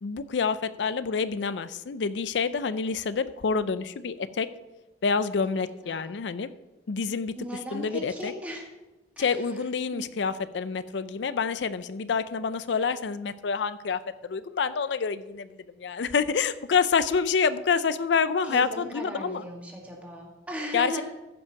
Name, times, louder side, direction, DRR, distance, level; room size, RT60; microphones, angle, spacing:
voice 1, 0.0-4.5 5.0-6.5 6.9-7.3 7.7-8.3 9.2-19.4 20.7-21.0, left 5 dB, 80° left, 14 dB, 0.5 m, -27 dB
voice 2, 5.5-6.2 7.3-8.7 9.2-9.7 9.9-10.1 18.4-21.0, equal, 10° right, -1 dB, 2.1 m, -38 dB
14.5 x 5.4 x 5.8 m, 1.1 s
head